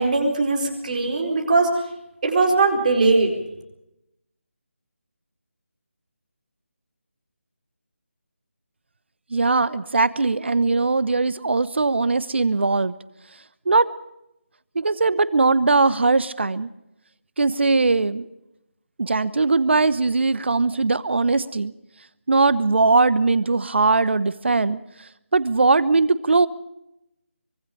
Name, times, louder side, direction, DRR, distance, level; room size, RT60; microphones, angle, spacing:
voice 1, 0.0-1.7 2.2-3.3, right 3 dB, 35° right, 2 dB, 4.3 m, -20 dB
voice 2, 9.3-12.9 13.7-13.9 14.7-16.7 17.4-18.3 19.0-21.7 22.3-24.8 25.3-26.5, right 3 dB, 55° right, 17 dB, 1.1 m, -20 dB
24.5 x 22.5 x 5.1 m, 0.87 s
figure-of-eight pair, 160°, 7 cm